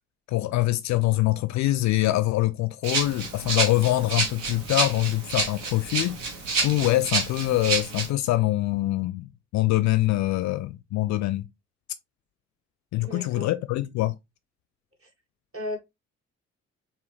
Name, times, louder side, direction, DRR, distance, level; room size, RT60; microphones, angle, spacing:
voice 1, 0.3-6.2 6.6-11.5 12.9-14.2, left 16 dB, 50° left, 0.4 m, -24 dB
Rattle (instrument), 2.8-8.1, right 4 dB, 75° right, 1.0 m, -28 dB
voice 2, 13.0-13.5 15.0-15.1 15.5-15.8, left 1 dB, 35° right, 2.0 m, -34 dB
4.6 x 2.8 x 3.2 m
figure-of-eight pair, 40°, 37 cm